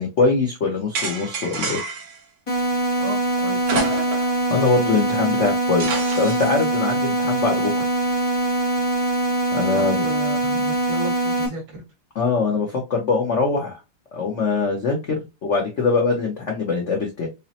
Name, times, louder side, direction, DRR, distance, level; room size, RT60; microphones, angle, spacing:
voice 1, 0.0-1.8 4.5-7.8 9.5-10.0 12.2-13.8 14.1-17.3, left 4 dB, 85° left, 0.6 m, -22 dB
sound 1, 0.9-2.2 3.6-4.4 4.7-4.8 5.8-6.6, right 3 dB, 85° right, 2.1 m, -28 dB
sound 2, 2.5-11.5, right 1 dB, 40° left, 0.4 m, -23 dB
voice 2, 3.0-3.9 9.7-11.8, right 2 dB, 70° right, 2.4 m, -34 dB
5.3 x 2.0 x 2.8 m
omnidirectional pair, 2.4 m